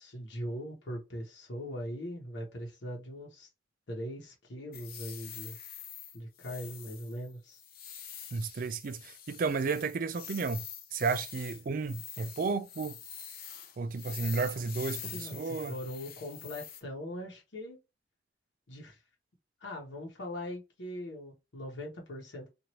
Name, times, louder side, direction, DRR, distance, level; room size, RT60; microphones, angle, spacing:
voice 1, 0.0-3.5 3.9-5.6 6.1-7.6 15.1-17.8 18.7-19.0 19.6-22.5, equal, 85° left, 1.0 m, -41 dB
sound 1, 4.7-16.8, left 8 dB, 55° left, 0.6 m, -46 dB
voice 2, 8.3-10.6 10.9-13.0 13.8-15.7, right 4 dB, 50° right, 0.4 m, -32 dB
3.0 x 2.5 x 2.8 m
head